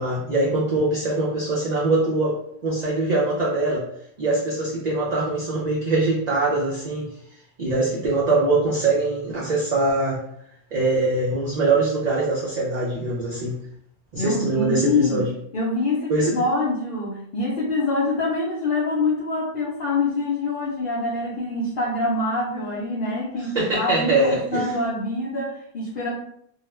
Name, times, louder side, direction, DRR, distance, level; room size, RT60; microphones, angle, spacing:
voice 1, 0.0-3.9 4.2-7.1 7.6-10.2 10.7-13.6 14.1-15.3 16.1-16.3 23.5-24.8, right 2 dB, 50° right, -5 dB, 0.5 m, -23 dB
voice 2, 14.2-15.3 15.5-26.1, left 2 dB, 55° left, -6 dB, 0.7 m, -25 dB
2.3 x 2.1 x 3.1 m, 0.71 s
omnidirectional pair, 1.2 m